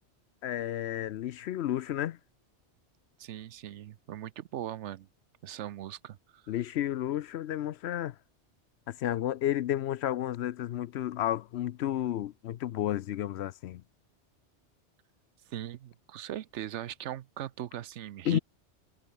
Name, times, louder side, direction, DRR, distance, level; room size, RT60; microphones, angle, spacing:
voice 1, 0.4-2.2 6.5-8.2 8.9-13.8 18.2-18.4, left 12 dB, 70° left, 0.8 m, -32 dB
voice 2, 3.2-5.1 5.4-6.4 15.5-18.4, right 11 dB, 80° right, 1.0 m, -39 dB
omnidirectional pair, 1.2 m